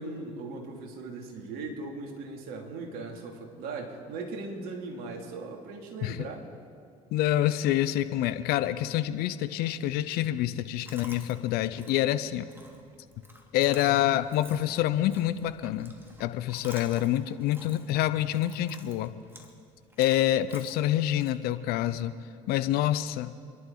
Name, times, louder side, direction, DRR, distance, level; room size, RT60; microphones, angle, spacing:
voice 1, 0.0-6.5, right 3 dB, 60° right, 1 dB, 3.0 m, -38 dB
voice 2, 7.1-12.5 13.5-15.9 16.2-19.1 20.0-22.2 22.5-23.3, left 13 dB, 60° left, 12 dB, 0.8 m, -27 dB
Chewing mastication, 10.8-21.3, equal, 15° right, 2.7 m, -52 dB
28.0 x 11.0 x 4.1 m, 2.4 s
hypercardioid pair, 65°, 18 cm